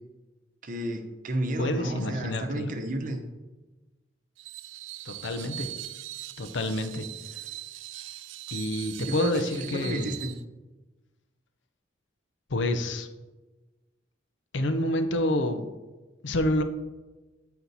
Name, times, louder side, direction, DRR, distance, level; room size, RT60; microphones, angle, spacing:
voice 1, 0.6-3.2 9.0-10.3, right 1 dB, 45° right, 5 dB, 0.8 m, -32 dB
voice 2, 1.6-2.8 5.0-5.7 6.4-7.1 8.5-10.1 12.5-13.1 14.5-15.7 16.2-16.6, left 1 dB, 75° left, 8 dB, 0.6 m, -28 dB
Screech, 4.4-10.4, right 16 dB, 80° right, 0.3 m, -40 dB
8.0 x 4.3 x 4.1 m, 1.2 s
head